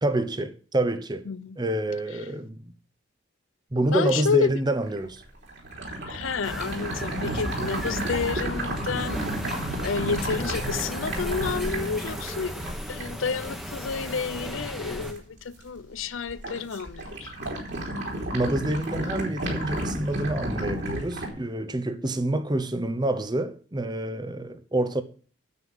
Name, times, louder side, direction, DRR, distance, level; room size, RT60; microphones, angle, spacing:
voice 1, 0.0-1.2 1.6-2.7 3.7-5.2 18.3-25.0, right 1 dB, 20° right, 0.8 m, -27 dB
voice 2, 1.3-1.6 3.9-4.5 6.1-9.2 9.8-12.6 12.9-17.4, left 5 dB, 85° left, 0.6 m, -30 dB
sound 1, 4.8-15.2 15.5-16.0 16.3-21.3, right 1 dB, 60° right, 3.6 m, -32 dB
sound 2, 6.4-15.1, equal, ahead, 1.2 m, -36 dB
9.5 x 8.0 x 5.5 m
head